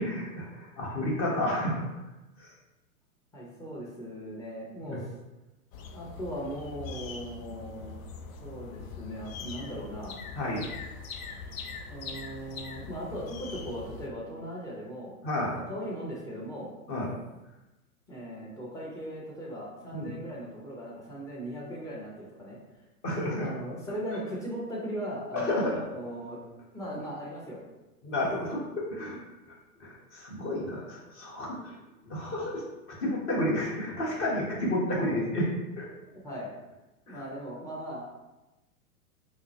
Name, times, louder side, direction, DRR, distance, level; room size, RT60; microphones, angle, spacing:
voice 1, 0.0-1.8 2.4-2.5 4.8-5.0 10.4-10.7 15.2-15.6 16.9-17.1 19.9-20.1 23.0-23.5 25.3-25.8 28.0-29.2 29.8-31.7 32.0-32.6 33.0-35.8 37.1-37.2, left 1 dB, 30° left, -4 dB, 1.0 m, -31 dB
voice 2, 3.3-5.1 5.9-7.9 8.4-10.2 11.9-15.1 15.5-16.7 18.1-22.8 23.4-25.6 25.9-26.5 26.7-27.6 36.2-36.5 37.1-38.0, equal, 5° left, -5 dB, 0.5 m, -38 dB
sound 1, 5.7-14.1, left 5 dB, 65° left, 0.5 m, -42 dB
3.6 x 2.1 x 2.8 m, 1.0 s
hypercardioid pair, 110°, 46 cm